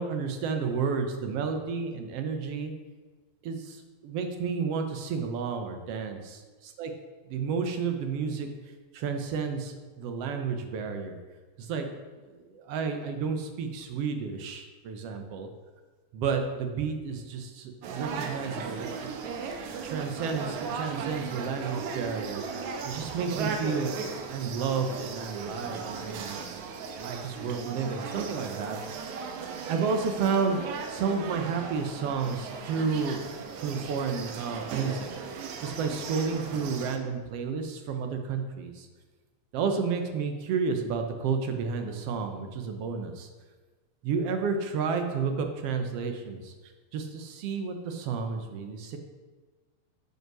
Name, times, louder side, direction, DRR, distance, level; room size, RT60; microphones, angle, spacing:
voice 1, 0.0-2.7 3.4-6.9 7.2-8.5 8.9-11.2 11.6-11.9 12.3-15.5 16.1-19.1 19.4-23.9 24.2-26.4 26.7-28.8 29.1-29.2 29.7-30.6 30.9-33.3 33.6-35.1 35.6-38.9 39.5-43.3 44.0-46.5 46.9-49.0, right 5 dB, 65° right, 6 dB, 1.7 m, -31 dB
sound 1, 17.8-37.0, right 5 dB, 85° right, 2.3 m, -37 dB
9.4 x 5.5 x 6.2 m, 1.3 s
omnidirectional pair, 3.3 m